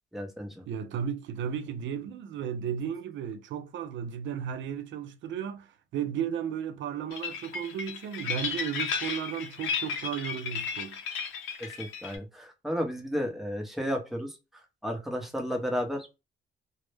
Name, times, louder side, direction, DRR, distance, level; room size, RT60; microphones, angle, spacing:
voice 1, 0.1-0.6 11.6-14.3 14.8-16.1, equal, ahead, 0.7 m, -33 dB
voice 2, 0.7-11.0, right 8 dB, 70° right, 0.4 m, -34 dB
sound 1, 7.1-12.2, left 6 dB, 85° left, 0.6 m, -34 dB
2.1 x 2.0 x 3.1 m
cardioid pair, 90°, 20 cm